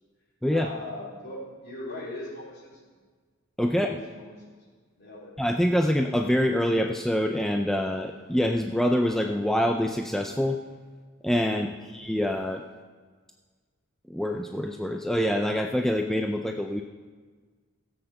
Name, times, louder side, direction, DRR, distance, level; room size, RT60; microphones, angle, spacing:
voice 1, 0.5-2.8 3.7-4.6 4.9-5.3 11.5-11.9, left 1 dB, 50° left, -5 dB, 4.0 m, -40 dB
voice 2, 3.6-4.0 5.4-10.6 11.2-12.6 14.1-16.8, equal, ahead, 3 dB, 0.4 m, -25 dB
16.5 x 8.0 x 5.6 m, 1.5 s
head